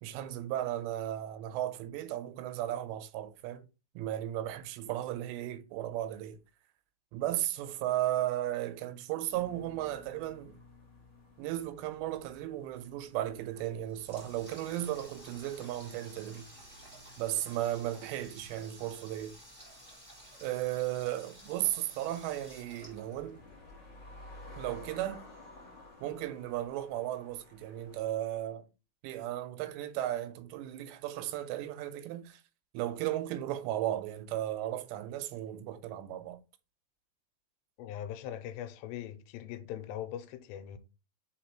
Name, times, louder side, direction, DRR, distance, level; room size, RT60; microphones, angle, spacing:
voice 1, 0.0-3.7 4.0-6.4 7.1-10.6 11.4-16.5 17.2-19.4 20.4-23.4 24.6-25.2 26.0-28.7 29.0-32.4 32.7-36.4, right 13 dB, 90° right, 2.9 m, -35 dB
sound 1, 9.3-28.0, left 2 dB, 25° left, 1.5 m, -55 dB
Water tap faucet, 13.5-23.7, equal, 10° right, 2.5 m, -54 dB
sound 2, 13.5-18.7, right 6 dB, 70° right, 1.6 m, -58 dB
voice 2, 37.8-40.8, left 11 dB, 85° left, 2.8 m, -41 dB
5.1 x 4.8 x 4.4 m
omnidirectional pair, 4.9 m